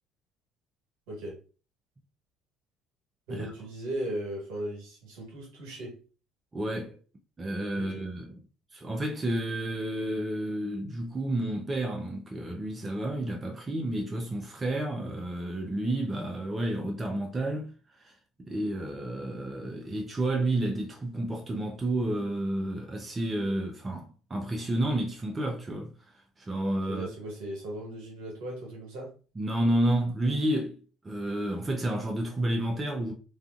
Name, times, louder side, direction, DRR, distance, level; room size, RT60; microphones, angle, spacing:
voice 1, 1.1-1.4 3.3-6.0 7.8-8.1 26.9-29.1, right 1 dB, 75° right, 1.2 m, -37 dB
voice 2, 6.5-7.0 7.4-8.4 8.7-17.7 18.0-18.1 18.4-27.1 29.4-30.8 31.0-33.1, right 1 dB, 25° right, 0.5 m, -30 dB
2.5 x 2.4 x 2.4 m
hypercardioid pair, 65°, 0 cm